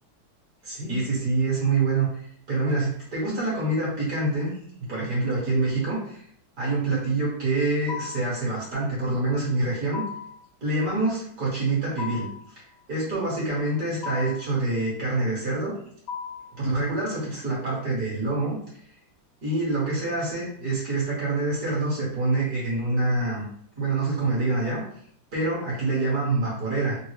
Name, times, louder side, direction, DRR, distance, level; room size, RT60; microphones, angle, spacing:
voice 1, 0.6-6.2 6.6-10.0 10.6-12.3 12.9-15.7 16.6-18.6 19.4-23.5 23.7-24.8 25.3-27.0, right 2 dB, 50° right, -6 dB, 1.6 m, -26 dB
sound 1, 7.9-8.4 9.9-10.4 12.0-12.5 14.0-14.5 16.1-16.6, left 6 dB, 85° left, 1.5 m, -35 dB
3.8 x 2.0 x 3.1 m, 0.64 s
omnidirectional pair, 2.1 m